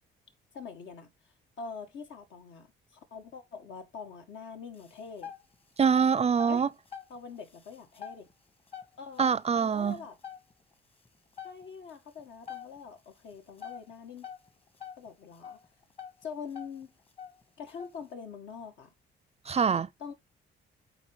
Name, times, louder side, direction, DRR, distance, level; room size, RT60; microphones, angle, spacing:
voice 1, 0.5-1.1 1.6-5.3 6.5-6.7 7.1-8.3 9.0-9.3 9.6-10.2 11.4-14.3 15.0-15.6 16.2-16.9 17.6-18.9 20.0-20.1, left 5 dB, 70° left, 1.9 m, -44 dB
sound 1, 4.8-5.5 5.9-7.2 7.5-8.2 8.7-9.6 10.0-10.1 10.2-10.5 11.1-11.2 11.4-11.6 11.9-12.0 12.5-12.8 13.6-14.5 14.7-16.2 16.5-16.8 17.2-18.0, left 8 dB, 30° left, 1.5 m, -43 dB
voice 2, 5.8-6.7 9.2-10.0 19.5-19.9, right 6 dB, 30° right, 0.5 m, -24 dB
8.2 x 4.3 x 4.9 m
cardioid pair, 90°, 20 cm